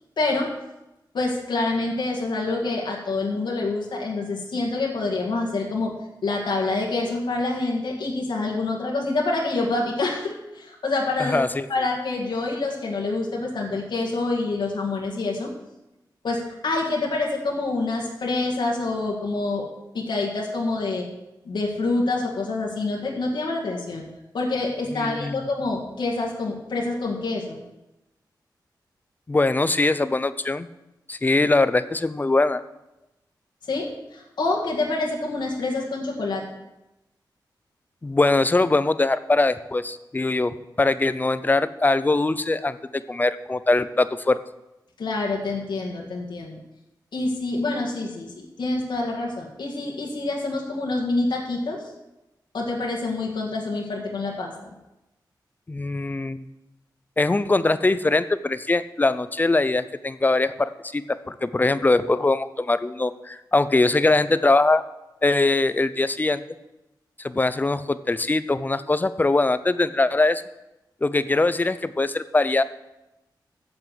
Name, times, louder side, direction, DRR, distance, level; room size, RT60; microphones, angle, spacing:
voice 1, 0.2-0.5 1.1-5.9 6.2-11.4 11.7-15.5 16.2-19.7 19.9-21.1 21.5-24.1 24.3-27.6 33.7-36.4 45.0-46.6 47.1-51.8 52.5-54.5, left 3 dB, 80° left, -1 dB, 1.9 m, -26 dB
voice 2, 11.2-11.7 24.9-25.5 29.3-30.7 31.1-32.6 38.0-44.4 55.7-56.5 57.2-64.8 65.2-66.4 67.2-70.4 71.0-72.6, left 2 dB, 25° left, 14 dB, 0.5 m, -22 dB
7.9 x 7.4 x 7.5 m, 0.95 s
wide cardioid pair, 95°, 8 cm